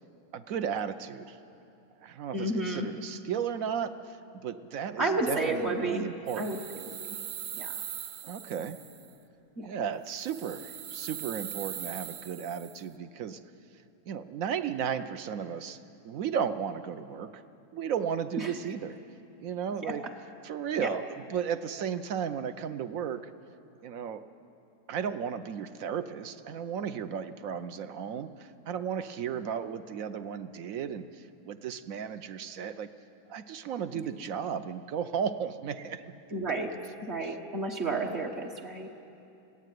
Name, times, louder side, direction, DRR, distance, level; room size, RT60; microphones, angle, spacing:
voice 1, 0.3-1.4 2.0-6.6 8.2-8.8 9.6-13.4 14.1-15.8 16.0-17.4 17.7-19.0 19.4-20.1 20.4-23.3 23.8-24.2 24.9-32.9 33.3-36.0 37.2-37.4, right 7 dB, 65° right, 11 dB, 1.1 m, -34 dB
voice 2, 2.3-2.9 5.0-6.1 6.4-6.6 7.1-7.2 7.6-7.8 9.6-9.7 18.4-18.5 19.8-19.9 20.8-20.9 36.3-36.7 37.0-39.0, right 2 dB, 45° right, 2 dB, 1.4 m, -31 dB
sound 1, 6.3-9.1 10.1-12.8, right 10 dB, 80° right, 1.3 m, -41 dB
21.5 x 16.0 x 9.4 m, 2.8 s
omnidirectional pair, 1.7 m